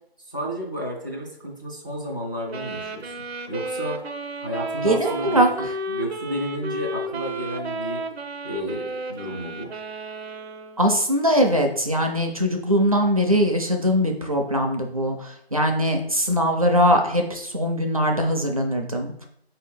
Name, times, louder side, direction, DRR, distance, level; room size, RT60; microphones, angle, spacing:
voice 1, 0.3-3.1 3.5-4.0 4.4-8.1 8.4-9.7, equal, 20° left, -3 dB, 0.5 m, -32 dB
sound 1, 2.5-10.9, right 2 dB, 85° right, 0.7 m, -32 dB
voice 2, 4.8-5.5 10.8-19.1, equal, 35° right, 2 dB, 0.4 m, -21 dB
4.3 x 2.7 x 4.4 m, 0.68 s
figure-of-eight pair, 160°, 31 cm